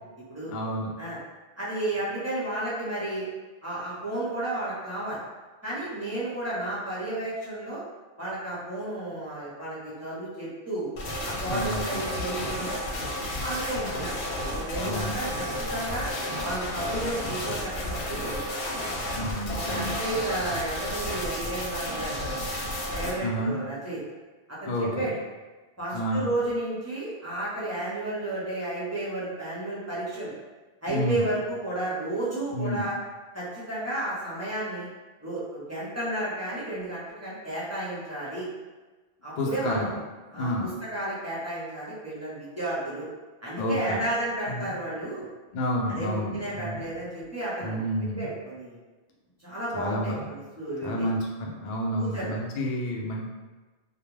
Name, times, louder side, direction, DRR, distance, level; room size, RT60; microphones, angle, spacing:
voice 1, 0.4-0.9 11.5-11.9 14.8-15.2 18.8-20.0 23.2-23.6 24.6-25.1 25.9-26.3 30.9-31.2 32.5-32.9 39.4-39.8 40.2-40.7 43.6-44.0 44.5-44.7 45.5-46.8 47.6-48.3 49.7-50.2 50.8-53.3, equal, 55° left, -2 dB, 0.5 m, -30 dB
voice 2, 1.6-3.3 3.6-5.2 5.6-7.8 8.2-10.9 11.2-12.7 13.4-14.2 14.5-16.1 16.4-18.4 19.5-22.5 22.9-24.0 24.5-25.1 25.8-30.3 30.8-32.9 33.3-34.9 35.2-38.5 39.2-39.9 40.3-43.1 43.4-45.3 45.9-47.9 48.2-48.8 49.4-51.1 51.9-52.3, right 1 dB, 15° right, -9 dB, 0.6 m, -32 dB
sound 1, 11.0-23.1, left 1 dB, 80° left, 0.9 m, -32 dB
2.3 x 2.1 x 3.1 m, 1.2 s
omnidirectional pair, 1.1 m